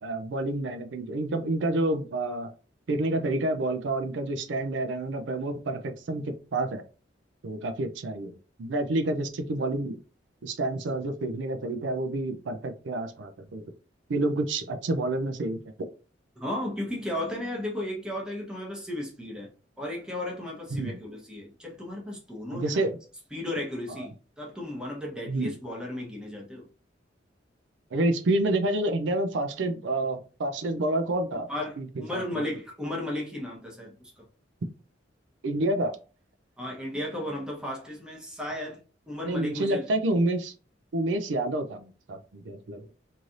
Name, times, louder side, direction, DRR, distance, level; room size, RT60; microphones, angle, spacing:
voice 1, 0.0-2.5 2.9-6.8 7.4-10.0 10.4-13.6 14.1-15.9 20.8-21.0 22.5-23.0 24.0-24.1 25.3-25.5 27.9-31.5 31.8-32.2 35.4-36.0 39.3-40.5 40.9-42.9, right 2 dB, 85° right, 0.5 m, -28 dB
voice 2, 16.4-19.5 19.8-22.9 23.3-26.7 31.5-34.3 36.6-38.8 39.1-39.9, left 1 dB, 5° right, 0.9 m, -34 dB
3.1 x 2.7 x 2.5 m
head